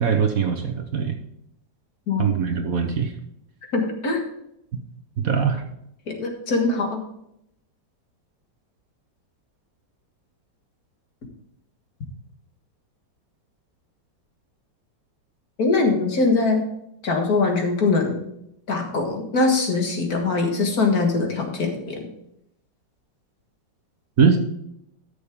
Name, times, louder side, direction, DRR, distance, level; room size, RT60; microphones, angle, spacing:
voice 1, 0.0-1.1 2.2-3.1 5.2-5.6 24.2-24.4, right 6 dB, 55° right, 5 dB, 1.2 m, -21 dB
voice 2, 2.1-2.4 3.7-4.2 6.1-7.0 15.6-16.6 17.0-18.2 18.7-22.1, left 3 dB, 55° left, 3 dB, 2.0 m, -22 dB
12.5 x 6.9 x 3.6 m, 0.77 s
omnidirectional pair, 2.0 m